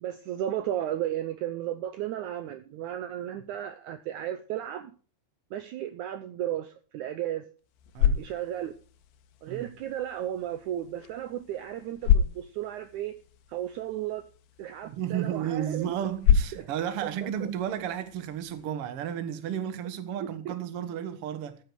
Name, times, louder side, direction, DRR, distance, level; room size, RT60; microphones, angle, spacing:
voice 1, 0.0-4.9 5.5-7.5 8.2-8.7 9.4-13.1 13.5-14.3 14.6-15.9 16.5-16.7 17.0-17.5 20.5-20.6, right 11 dB, 85° right, 1.7 m, -34 dB
sound 1, 7.6-18.7, left 8 dB, 90° left, 2.9 m, -31 dB
voice 2, 7.9-8.2 9.5-9.7 14.8-21.6, right 10 dB, 65° right, 1.5 m, -33 dB
14.0 x 8.7 x 4.9 m
omnidirectional pair, 4.4 m